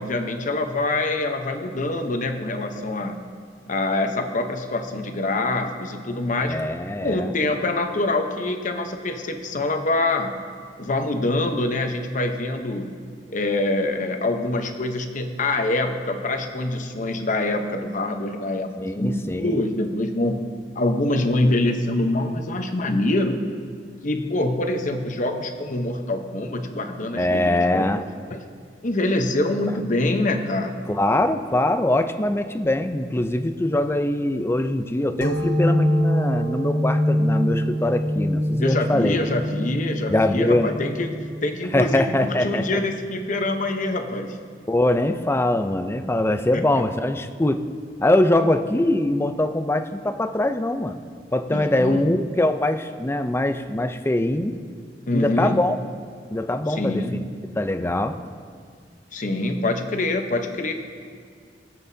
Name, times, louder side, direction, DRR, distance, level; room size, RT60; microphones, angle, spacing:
voice 1, 0.0-3.2 3.7-6.6 7.0-10.3 10.8-12.9 13.3-20.4 20.7-23.4 24.0-27.9 28.3-28.4 28.8-30.8 38.6-44.4 46.5-46.6 51.5-52.1 55.1-55.6 56.7-57.3 59.1-60.7, left 2 dB, 45° left, 5 dB, 0.9 m, -25 dB
voice 2, 6.4-7.3 18.8-19.6 27.2-28.0 30.9-39.2 40.1-40.7 41.7-42.8 44.7-47.6 48.0-51.0 51.3-54.5 55.1-55.8 56.3-57.0 57.6-58.2, left 1 dB, 15° left, 8 dB, 0.5 m, -22 dB
sound 1, 35.2-42.5, equal, 85° left, 1.8 m, -24 dB
23.0 x 7.9 x 2.7 m, 2.1 s
head